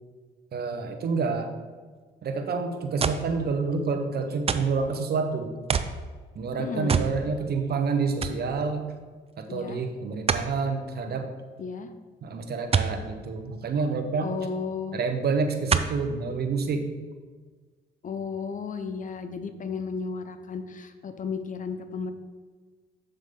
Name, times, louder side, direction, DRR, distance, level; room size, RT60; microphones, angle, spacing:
voice 1, 0.5-1.5 2.2-5.5 6.3-8.8 9.4-11.3 12.2-14.3 14.9-16.9, right 4 dB, 55° right, 6 dB, 0.9 m, -28 dB
sound 1, 3.0-3.3 4.5-4.8 5.7-6.0 6.9-7.2 7.6-7.7 8.2-8.4 10.3-10.5 12.7-13.0 14.4-14.5 15.7-16.0 16.7-16.8, right 6 dB, 30° right, 0.4 m, -25 dB
voice 2, 6.6-6.9 9.5-9.8 11.6-11.9 14.2-15.0 18.0-22.1, left 5 dB, 40° left, 9 dB, 0.7 m, -33 dB
7.2 x 6.8 x 3.7 m, 1.5 s
cardioid pair, 90°, 20 cm